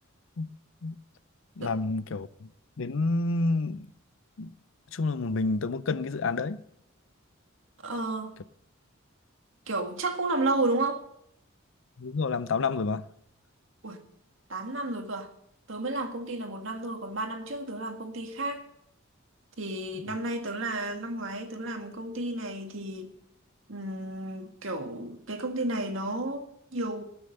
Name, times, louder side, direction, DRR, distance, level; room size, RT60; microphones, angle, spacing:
voice 1, 1.6-2.5 2.8-3.9 4.4-4.5 4.9-6.6 12.0-13.0, left 3 dB, 65° left, 0.6 m, -29 dB
voice 2, 7.8-8.3 9.7-11.0 13.8-14.0 14.5-15.3 15.7-18.6 19.6-23.1 23.7-27.0, right 2 dB, 65° right, 2.0 m, -32 dB
19.5 x 7.0 x 6.6 m
head